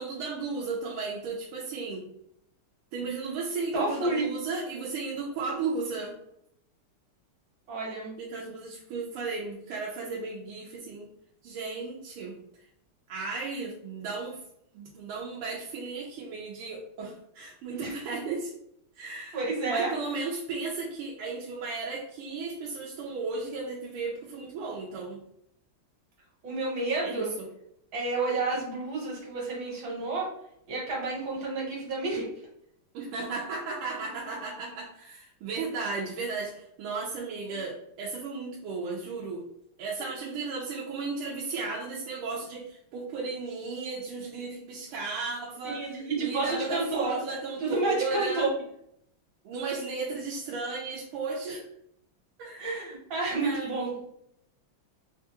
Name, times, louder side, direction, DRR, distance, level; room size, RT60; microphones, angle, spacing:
voice 1, 0.0-2.1 2.9-6.1 8.2-11.1 11.4-12.3 13.1-14.4 14.7-18.5 18.9-25.2 27.0-27.5 32.9-39.4 39.8-48.5 49.4-51.6 52.4-52.7 53.4-53.9, right 4 dB, 90° right, -4 dB, 1.6 m, -35 dB
voice 2, 3.7-4.2 7.7-8.1 17.7-17.9 19.3-19.9 26.4-27.3 27.9-30.3 30.7-32.2 45.6-47.1 47.6-48.5 52.6-53.9, right 3 dB, 65° right, -5 dB, 1.8 m, -30 dB
4.1 x 2.3 x 2.8 m, 0.74 s
omnidirectional pair, 2.4 m